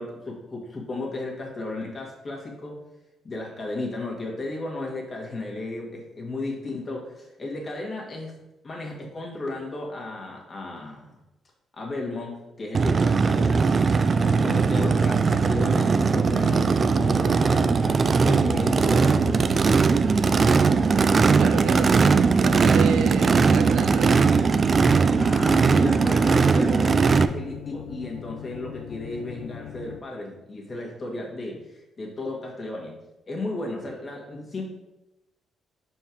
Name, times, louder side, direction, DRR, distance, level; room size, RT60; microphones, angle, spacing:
voice 1, 0.0-2.8 3.2-11.2 11.7-13.8 14.2-19.5 25.1-32.9 33.3-34.6, left 2 dB, 35° left, -1 dB, 1.7 m, -34 dB
Race car auto racing / Idling / Accelerating revving vroom, 12.7-27.3, right 5 dB, 40° right, 0.3 m, -20 dB
sound 1, 14.0-30.0, left 11 dB, 75° left, 0.4 m, -40 dB
voice 2, 21.4-24.4, right 7 dB, 90° right, 8 dB, 0.5 m, -31 dB
5.4 x 4.5 x 4.5 m, 0.94 s
cardioid pair, 90°, 0 cm